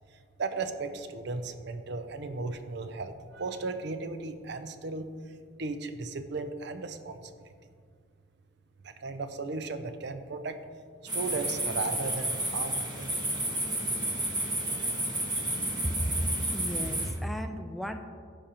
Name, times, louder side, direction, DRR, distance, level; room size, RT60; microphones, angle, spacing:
voice 1, 0.4-5.1 5.6-7.2 8.8-10.6 11.1-13.1, right 3 dB, 55° right, 9 dB, 0.5 m, -35 dB
sound 1, 11.1-17.1, right 1 dB, 20° right, 1.2 m, -31 dB
voice 2, 15.8-16.2 16.5-18.0, equal, ahead, 6 dB, 0.4 m, -34 dB
13.5 x 5.3 x 2.9 m, 2.1 s
head